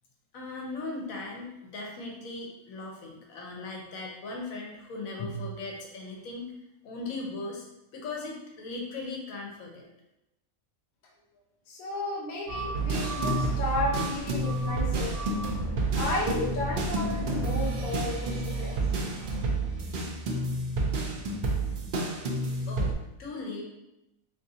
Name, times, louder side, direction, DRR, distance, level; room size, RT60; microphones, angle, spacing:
voice 1, 0.3-6.5 6.8-7.7 7.9-9.8 22.7-23.6, left 2 dB, 75° left, -1 dB, 1.1 m, -38 dB
voice 2, 11.7-15.1 15.9-18.7, left 2 dB, 45° left, -3 dB, 0.7 m, -33 dB
sound 1, 12.5-19.3, right 2 dB, 30° right, 0.8 m, -35 dB
sound 2, 12.7-22.9, right 2 dB, 75° right, 0.4 m, -30 dB
3.6 x 3.0 x 2.7 m, 0.89 s
omnidirectional pair, 1.5 m